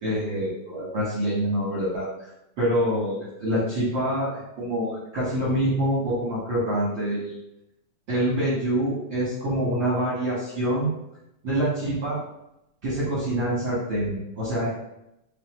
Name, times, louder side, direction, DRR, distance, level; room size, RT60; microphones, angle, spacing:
voice 1, 0.0-2.3 2.6-7.4 8.1-10.9 11.4-12.2 12.8-14.7, right 1 dB, 65° right, -9 dB, 1.1 m, -26 dB
6.3 x 2.2 x 3.0 m, 0.84 s
omnidirectional pair, 3.8 m